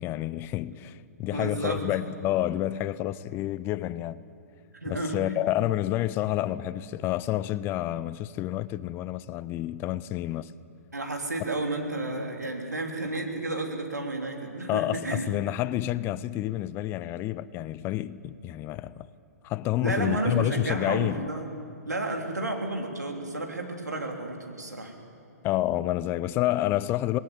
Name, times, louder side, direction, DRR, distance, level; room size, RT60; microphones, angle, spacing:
voice 1, 0.0-4.2 4.9-10.5 14.7-19.1 19.4-21.3 25.4-27.2, left 14 dB, 25° left, 0.5 m, -29 dB
voice 2, 1.3-1.8 4.7-5.2 10.9-15.3 19.8-21.5 21.9-24.9, right 2 dB, 90° right, 3.4 m, -31 dB
20.0 x 17.5 x 9.3 m
figure-of-eight pair, 125°, 9 cm